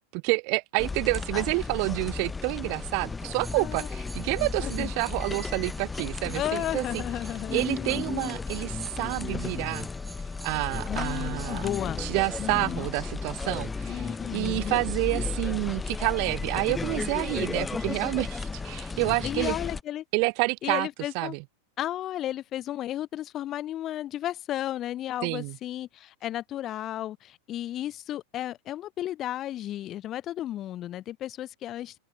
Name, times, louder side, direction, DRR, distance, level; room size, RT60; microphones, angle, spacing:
voice 1, 0.1-7.0 7.5-9.9 10.4-11.7 12.0-19.5 20.1-20.9 21.1-21.4 25.2-25.6, right 40 dB or more, 45° right, 0.4 m, -29 dB
sound 1, 0.8-19.8, left 4 dB, 10° left, 1.4 m, -34 dB
sound 2, 3.4-13.0 13.5-13.6, right 1 dB, 5° right, 3.6 m, -50 dB
voice 2, 3.6-3.9 4.6-4.9 6.3-8.1 10.9-12.0 12.4-12.9 13.9-14.8 19.2-20.0 20.6-21.4 21.8-32.0, left 12 dB, 30° left, 1.4 m, -34 dB
open air
figure-of-eight pair, 90°, 0 cm